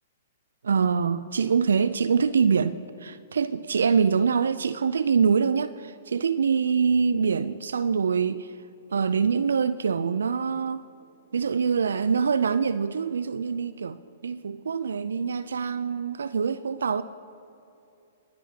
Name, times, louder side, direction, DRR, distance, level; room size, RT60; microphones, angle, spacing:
voice 1, 0.6-2.7 3.0-8.5 8.9-10.8 11.3-14.0 14.2-17.0, right 6 dB, 75° right, 0.3 m, -24 dB
23.5 x 10.0 x 2.8 m
hypercardioid pair, 120°, 0 cm